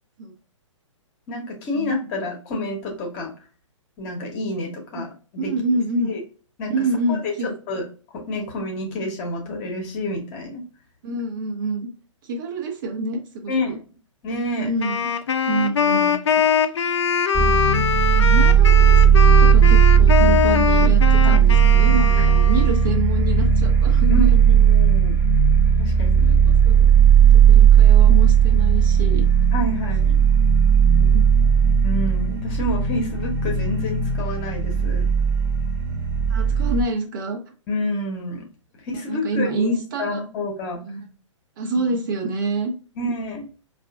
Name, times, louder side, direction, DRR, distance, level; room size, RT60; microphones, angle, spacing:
voice 1, 1.3-3.3 4.0-5.5 6.1-6.2 6.6-6.7 7.1-7.3 7.7-7.8 8.1-10.6 13.5-13.8 14.2-14.7 21.2-21.4 22.2-22.3 24.1-25.2 25.8-26.4 29.5-30.2 31.8-35.1 37.7-38.5 38.8-40.8 43.0-43.5, left 1 dB, 30° left, 1 dB, 1.0 m, -28 dB
voice 2, 5.4-6.1 6.7-7.5 11.0-11.9 12.2-13.7 14.6-15.0 15.5-16.2 17.4-17.8 18.1-24.3 26.2-26.9 27.3-29.2 30.9-31.2 36.3-37.4 39.1-40.2 40.9-41.1 41.6-42.7, right 2 dB, 40° right, 2 dB, 0.9 m, -27 dB
Wind instrument woodwind instrument, 14.8-23.0, left 7 dB, 60° left, 0.5 m, -22 dB
sound 1, 17.3-36.8, right 8 dB, 25° right, 1.1 m, -16 dB
4.6 x 2.5 x 2.4 m, 0.37 s
figure-of-eight pair, 125°, 17 cm